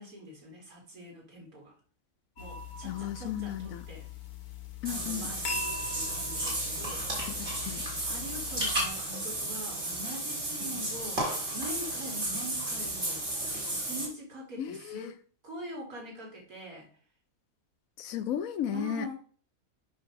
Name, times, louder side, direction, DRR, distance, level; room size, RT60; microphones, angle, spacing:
voice 1, 0.0-1.7 2.4-4.1 4.9-7.2 8.0-11.3 11.5-13.3 13.7-15.2 15.4-16.9 18.7-19.1, equal, 80° right, 2.5 m, -43 dB
sound 1, 2.4-8.9, left 5 dB, 90° left, 1.5 m, -41 dB
voice 2, 2.8-3.8 4.8-5.3 7.4-7.9 10.7-10.8 14.6-15.1 18.0-19.1, left 10 dB, 75° left, 1.0 m, -35 dB
Water / Bathtub (filling or washing), 4.9-14.1, right 1 dB, 55° right, 3.0 m, -33 dB
8.5 x 2.9 x 5.8 m
omnidirectional pair, 1.5 m